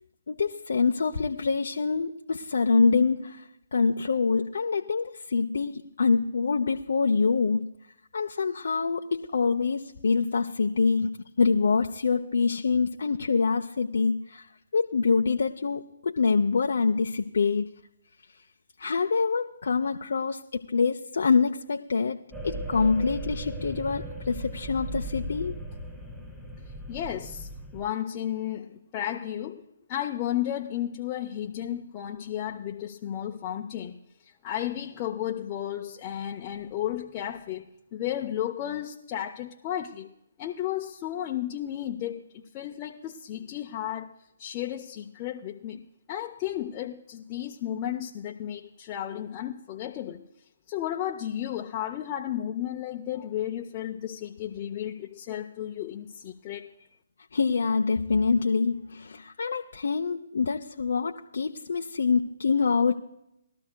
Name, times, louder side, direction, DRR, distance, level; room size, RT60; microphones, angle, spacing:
voice 1, 0.3-7.6 8.1-14.5 14.7-17.7 18.8-25.6 57.3-63.0, left 4 dB, 65° left, 0.6 m, -25 dB
sound 1, 22.3-27.8, right 1 dB, 5° right, 2.0 m, -37 dB
voice 2, 26.9-29.6 29.9-34.0 34.2-37.7 37.9-40.1 40.4-44.1 44.4-45.8 46.1-50.2 50.7-56.7, left 11 dB, 25° left, 0.7 m, -33 dB
20.5 x 13.0 x 2.2 m
figure-of-eight pair, 140°, 0 cm